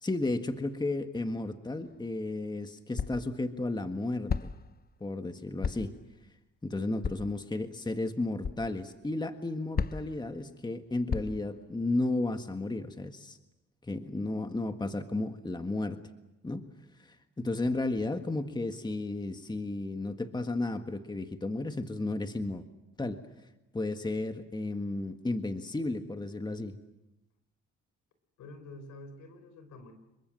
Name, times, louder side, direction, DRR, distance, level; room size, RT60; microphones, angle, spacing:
voice 1, 0.0-4.5 5.0-5.9 6.6-13.4 13.8-16.0 16.4-16.7 17.0-22.6 23.0-23.2 23.7-26.8, left 2 dB, 15° left, 7 dB, 1.7 m, -33 dB
sound 1, 1.9-2.0 3.0-3.3 4.3-4.7 5.6-6.0 7.0-7.4 8.4-8.6 9.8-10.2 11.1-11.5, left 6 dB, 30° left, 0.8 m, -33 dB
voice 2, 28.4-29.9, left 2 dB, 75° left, 9 dB, 4.6 m, -48 dB
27.5 x 23.0 x 7.6 m, 0.98 s
cardioid pair, 90°, 30 cm